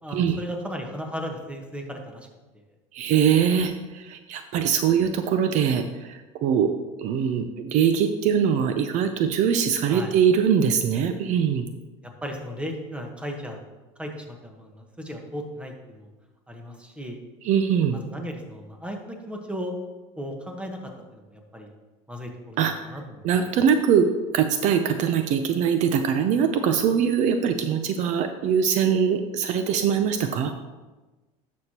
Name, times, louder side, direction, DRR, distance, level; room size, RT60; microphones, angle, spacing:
voice 1, 0.0-2.3 9.9-10.1 12.0-13.6 14.0-16.1 16.5-17.2 18.0-19.7 20.2-20.8 21.1-21.7 22.1-23.2, equal, 5° right, 2 dB, 1.2 m, -36 dB
voice 2, 2.9-5.8 6.1-6.7 7.0-11.7 17.4-18.0 22.6-22.7 23.2-24.1 24.3-30.5, right 7 dB, 55° right, 8 dB, 0.6 m, -22 dB
11.0 x 6.4 x 2.9 m, 1.2 s
supercardioid pair, 120°, 15 cm